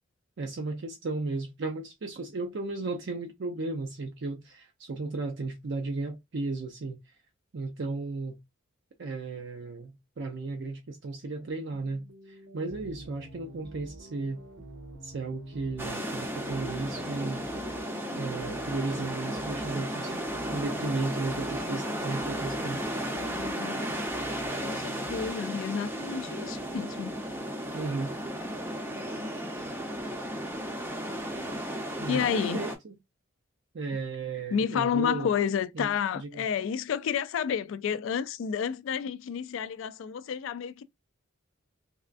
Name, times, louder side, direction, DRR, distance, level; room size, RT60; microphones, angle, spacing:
voice 1, 0.4-7.0 7.5-8.4 9.0-14.4 15.0-17.4 18.2-20.1 20.5-22.8 27.7-28.1 32.0-32.9 33.7-35.3 35.8-36.5, right 3 dB, 55° right, 0.5 m, -35 dB
sound 1, 11.7-25.3, right 1 dB, 90° right, 1.0 m, -47 dB
sound 2, 15.8-32.8, equal, 10° right, 0.5 m, -34 dB
voice 2, 23.1-23.9 24.6-27.1 32.1-32.6 34.5-40.8, left 7 dB, 65° left, 0.3 m, -30 dB
3.4 x 2.3 x 2.4 m
head